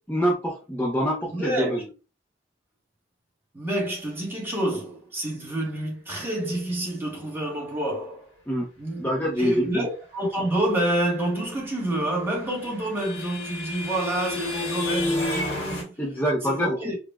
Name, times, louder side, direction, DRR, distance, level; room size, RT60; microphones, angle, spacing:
voice 1, 0.1-1.8 8.5-8.7 9.0-9.8 16.0-17.0, equal, 10° left, 0.7 m, -25 dB
voice 2, 1.2-1.8 3.5-8.4 8.8-9.1 9.4-16.0 16.4-17.0, right 1 dB, 15° right, 1.4 m, -28 dB
sound 1, 12.0-15.8, left 2 dB, 80° left, 1.6 m, -30 dB
4.9 x 2.4 x 2.3 m
head